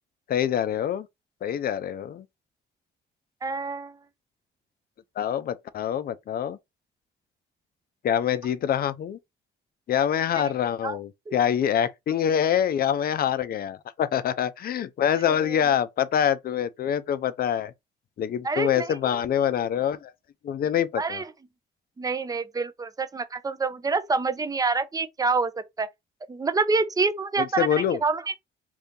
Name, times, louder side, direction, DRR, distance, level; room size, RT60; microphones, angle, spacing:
voice 1, 0.3-1.1 1.4-2.2 5.2-6.6 8.0-9.2 9.9-17.7 18.2-20.1 20.4-21.2 27.4-28.0, left 9 dB, 50° left, 0.5 m, -25 dB
voice 2, 3.4-4.0 10.4-10.5 10.8-11.0 11.3-11.4 15.3-15.6 18.4-19.0 21.0-21.3 22.0-25.9 26.3-28.3, right 4 dB, 20° right, 0.5 m, -27 dB
2.7 x 2.6 x 3.5 m
cardioid pair, 90°, 20 cm